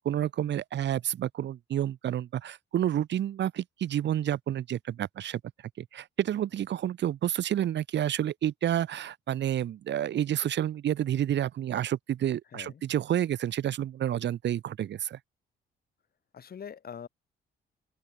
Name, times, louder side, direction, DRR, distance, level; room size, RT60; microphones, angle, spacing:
voice 1, 0.0-5.4 5.8-15.2, right 11 dB, 65° right, 1.2 m, -29 dB
voice 2, 12.5-12.8 16.3-17.1, left 7 dB, 50° left, 3.9 m, -43 dB
open air
cardioid pair, 90°, 20 cm